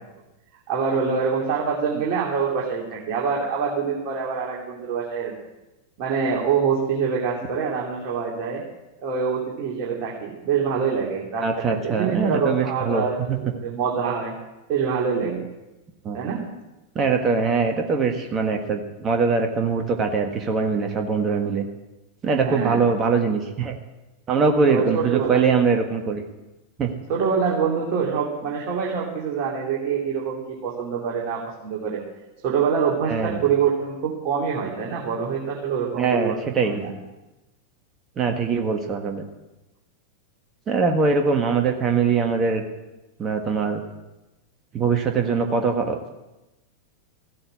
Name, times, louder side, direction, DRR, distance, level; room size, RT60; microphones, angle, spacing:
voice 1, 0.7-5.3 6.0-8.6 9.0-14.3 14.7-15.5 16.1-16.4 22.4-22.8 24.7-25.4 27.1-32.0 32.4-36.4 36.6-36.9, right 6 dB, 40° right, -4 dB, 2.8 m, -25 dB
voice 2, 11.4-13.0 16.0-16.2 16.9-21.7 22.2-23.7 24.3-26.2 26.8-26.9 33.0-33.4 36.0-36.8 38.2-39.2 40.7-42.6 43.2-43.8 44.7-46.1, right 5 dB, 25° right, 3 dB, 1.5 m, -22 dB
15.0 x 8.7 x 8.6 m, 1.0 s
figure-of-eight pair, 90°, 0 cm